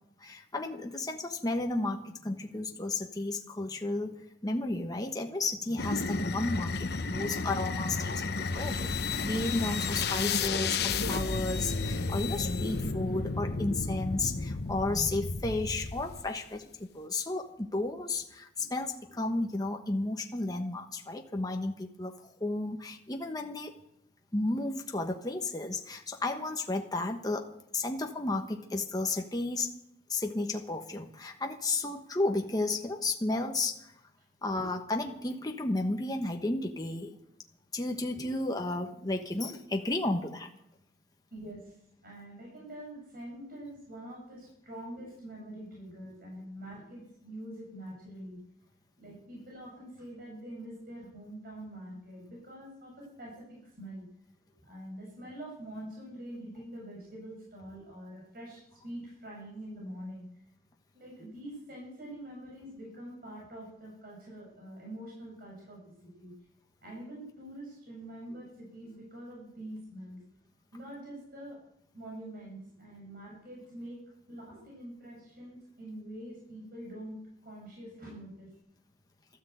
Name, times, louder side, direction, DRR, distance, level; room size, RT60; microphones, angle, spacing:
voice 1, 0.2-4.1 4.4-22.1 22.4-23.7 24.3-27.5 27.7-29.7 30.1-33.9 34.4-37.2 37.7-40.5, left 2 dB, 20° left, 3 dB, 1.2 m, -33 dB
sound 1, 5.8-16.4, left 4 dB, 65° left, 0.9 m, -32 dB
voice 2, 41.3-41.8 42.0-48.4 49.0-54.1 54.6-60.2 60.9-66.3 66.8-70.2 70.7-71.6 71.9-74.0 74.3-78.5, right 1 dB, 55° right, -3 dB, 6.6 m, -45 dB
13.5 x 13.0 x 7.9 m, 0.78 s
head